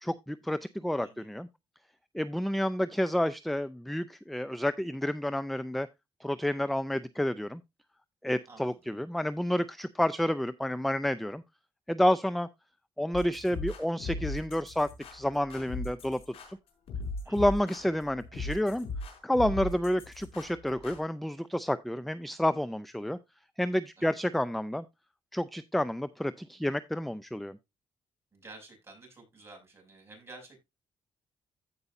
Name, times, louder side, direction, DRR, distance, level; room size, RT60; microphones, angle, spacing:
voice 1, 0.0-1.5 2.1-5.9 6.2-7.6 8.2-11.4 11.9-12.5 13.0-16.2 16.5-16.6 17.3-18.9 19.2-23.2 23.6-24.8 25.3-27.6, left 1 dB, ahead, 0.4 m, -29 dB
voice 2, 8.5-8.9 17.2-17.4 24.0-24.2 28.3-30.6, right 2 dB, 25° right, 6.1 m, -51 dB
sound 1, 13.1-21.0, left 3 dB, 75° left, 5.3 m, -39 dB
15.0 x 5.5 x 2.5 m
cardioid pair, 110°, 10 cm